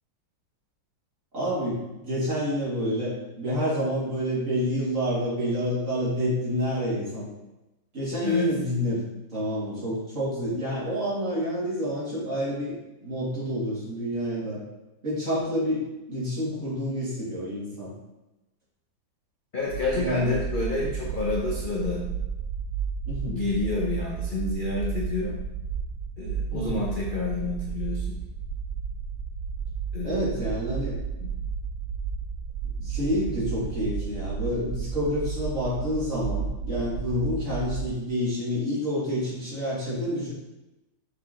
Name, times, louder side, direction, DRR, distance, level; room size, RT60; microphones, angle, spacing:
voice 1, 1.3-7.3 7.9-9.0 9.3-14.6 15.0-17.9 19.9-20.4 23.1-23.4 26.5-26.8 30.0-31.0 32.8-40.3, equal, 40° right, -8 dB, 2.8 m, -28 dB
voice 2, 19.5-22.0 23.3-25.4 26.2-28.2 29.9-30.3 31.2-31.3, left 3 dB, 45° left, -3 dB, 0.7 m, -29 dB
sound 1, 19.6-37.9, right 6 dB, 85° right, 1.5 m, -32 dB
6.5 x 4.9 x 3.7 m, 0.99 s
omnidirectional pair, 2.1 m